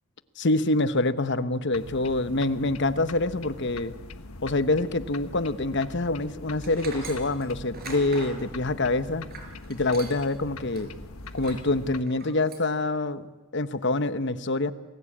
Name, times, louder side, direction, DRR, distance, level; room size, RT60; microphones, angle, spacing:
voice 1, 0.4-3.9 4.4-9.3 9.7-10.9 11.3-13.3 13.5-14.7, left 2 dB, 55° left, 13 dB, 1.1 m, -26 dB
sound 1, 1.7-12.0, left 2 dB, 85° left, 1.4 m, -43 dB
Tools, 6.6-10.4 10.7-10.8 11.3-11.7 12.1-12.7, right 3 dB, 45° right, 5.1 m, -42 dB
29.0 x 21.0 x 8.7 m, 1.2 s
head